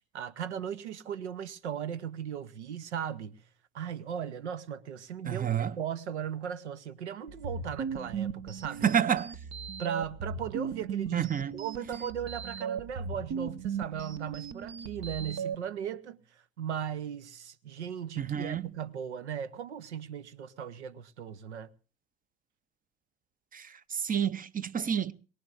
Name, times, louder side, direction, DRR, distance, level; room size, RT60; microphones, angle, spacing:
voice 1, 0.1-3.4 3.7-8.8 9.8-11.3 11.5-16.2 16.6-21.7, right 8 dB, 85° right, 0.7 m, -37 dB
voice 2, 5.2-5.8 8.8-9.3 11.1-11.5 18.2-18.7 23.5-25.1, right 8 dB, 25° right, 0.7 m, -29 dB
sound 1, 7.3-15.5, right 6 dB, 50° right, 1.2 m, -37 dB
22.5 x 18.5 x 2.5 m
hypercardioid pair, 65°, 33 cm